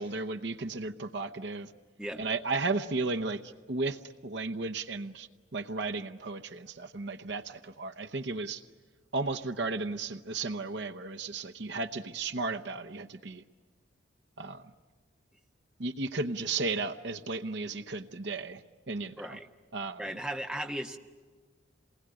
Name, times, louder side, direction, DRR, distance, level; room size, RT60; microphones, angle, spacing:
voice 1, 0.0-1.7 2.2-8.6 9.1-13.4 14.4-14.6 15.8-18.6 18.9-19.4 19.7-20.0, right 3 dB, 60° right, 8 dB, 0.8 m, -34 dB
voice 2, 19.2-19.5 20.0-21.0, right 1 dB, 5° right, 3 dB, 1.1 m, -36 dB
28.0 x 20.0 x 9.9 m, 1.4 s
head